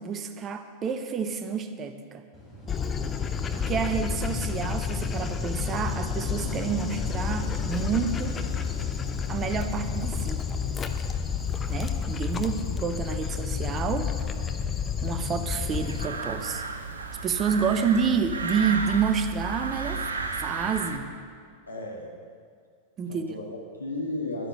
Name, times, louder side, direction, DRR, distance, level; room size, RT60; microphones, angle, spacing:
voice 1, 0.0-2.2 3.5-8.4 9.3-10.5 11.7-14.2 15.0-16.6 17.2-20.1 20.4-21.1 23.0-23.3, right 6 dB, 25° right, 8 dB, 0.9 m, -29 dB
Wind / Waves surf, 2.3-12.3, equal, ahead, 4.1 m, -41 dB
Dog, 2.7-16.1, left 6 dB, 20° left, 0.8 m, -30 dB
sound 1, 15.7-21.0, right 4 dB, 70° right, 1.0 m, -33 dB
voice 2, 21.7-22.1 23.1-24.5, left 2 dB, 80° left, -1 dB, 2.1 m, -34 dB
11.5 x 9.7 x 6.8 m, 2.1 s
figure-of-eight pair, 90°, 0 cm